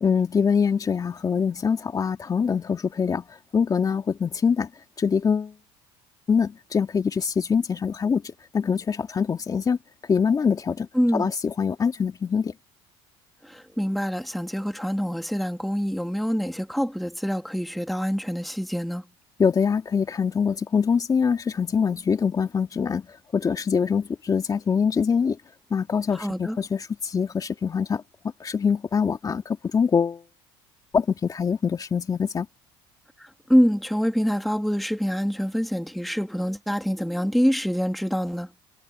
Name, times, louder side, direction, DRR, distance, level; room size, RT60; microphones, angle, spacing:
voice 1, 0.0-4.7 5.0-5.5 6.3-9.8 10.1-12.5 19.4-23.1 23.3-25.4 25.7-28.0 28.4-30.2 30.9-32.5, left 6 dB, 30° left, 2.3 m, -24 dB
voice 2, 10.9-11.3 13.4-19.1 26.1-26.6 33.2-38.5, equal, ahead, 2.5 m, -25 dB
supercardioid pair, 85°, 12 cm